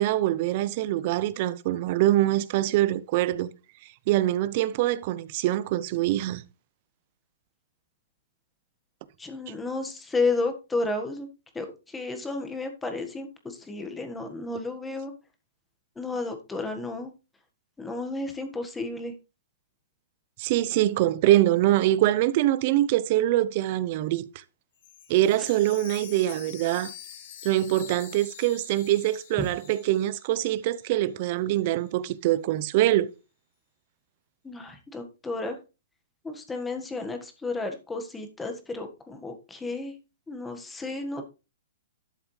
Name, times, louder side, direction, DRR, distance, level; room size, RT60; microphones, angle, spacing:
voice 1, 0.0-3.5 4.1-6.4 20.4-24.3 25.1-26.9 27.4-33.1, right 14 dB, 40° right, 0.7 m, -24 dB
voice 2, 9.2-11.3 11.5-15.1 15.9-17.1 17.8-19.1 29.4-29.5 34.4-35.6 36.2-39.9 40.3-41.3, left 3 dB, 10° left, 1.6 m, -32 dB
Chime, 24.8-30.7 31.0-31.1 31.7-31.8, left 9 dB, 55° left, 3.4 m, -46 dB
12.0 x 7.0 x 3.3 m
hypercardioid pair, 150°, 0 cm